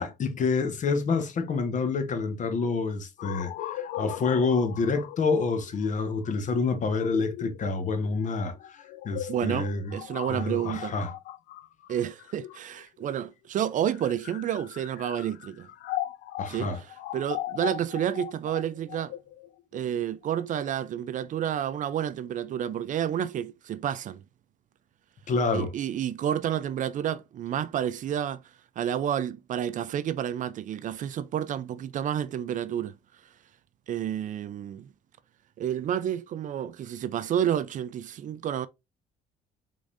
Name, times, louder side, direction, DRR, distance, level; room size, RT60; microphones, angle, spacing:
voice 1, 0.0-10.0 10.3-11.1 16.4-16.8 25.3-25.7, left 4 dB, 45° left, 1.1 m, -28 dB
sound 1, 3.2-13.0 13.8-20.7, left 13 dB, 80° left, 0.5 m, -39 dB
voice 2, 9.3-11.0 11.9-15.7 16.5-19.1 19.7-24.2 25.5-28.4 28.8-32.9 33.9-34.9 35.6-38.7, right 10 dB, 50° right, 0.4 m, -30 dB
5.1 x 3.7 x 2.5 m
cardioid pair, 110°, 17 cm